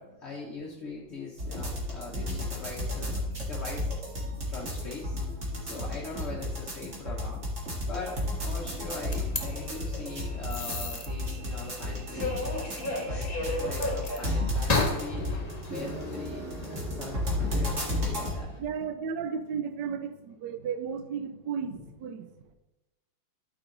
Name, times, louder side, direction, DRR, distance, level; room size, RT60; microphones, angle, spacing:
voice 1, 0.0-5.2 5.6-7.5 7.9-12.4 13.0-16.5 16.8-18.5 21.7-21.8, left 3 dB, 45° left, -2 dB, 1.0 m, -41 dB
sound 1, 1.4-18.4, left 1 dB, 35° right, 2.1 m, -33 dB
Subway metro underground, 8.1-18.6, left 1 dB, 25° left, 1.9 m, -39 dB
sound 2, 9.1-9.4 10.5-11.1 13.7-14.2 14.7-16.9, left 3 dB, 85° left, 0.3 m, -32 dB
voice 2, 18.6-22.3, right 6 dB, 70° right, 9 dB, 1.2 m, -34 dB
12.5 x 4.9 x 3.9 m, 0.99 s
omnidirectional pair, 2.3 m